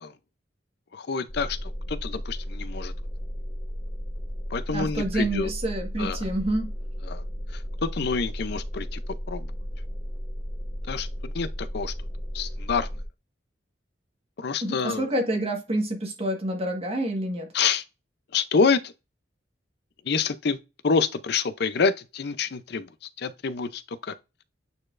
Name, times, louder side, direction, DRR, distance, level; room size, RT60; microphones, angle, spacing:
voice 1, 0.9-2.9 4.5-5.5 6.0-6.3 7.1-7.2 7.8-9.0 9.3-9.5 10.9-11.9 12.3-12.9 14.4-15.1 17.5-17.8 18.3-18.9 20.1-20.6 20.8-22.9 23.2-24.1, left 5 dB, 60° left, 0.6 m, -27 dB
sound 1, 1.3-13.1, equal, 20° left, 1.4 m, -34 dB
voice 2, 4.7-6.7 14.6-17.5, right 1 dB, 35° right, 1.5 m, -28 dB
8.6 x 4.3 x 2.5 m
head